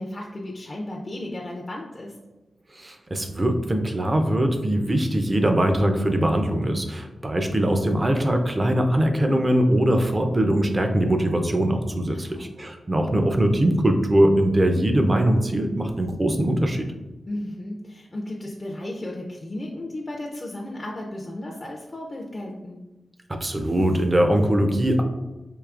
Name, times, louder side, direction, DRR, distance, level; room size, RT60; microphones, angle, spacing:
voice 1, 0.0-2.1 12.1-12.5 17.3-22.8, left 1 dB, 30° left, -1 dB, 0.5 m, -34 dB
voice 2, 2.8-16.9 23.3-25.0, right 1 dB, 30° right, 5 dB, 0.5 m, -21 dB
4.6 x 2.8 x 2.4 m, 1.1 s
cardioid pair, 80°, 0 cm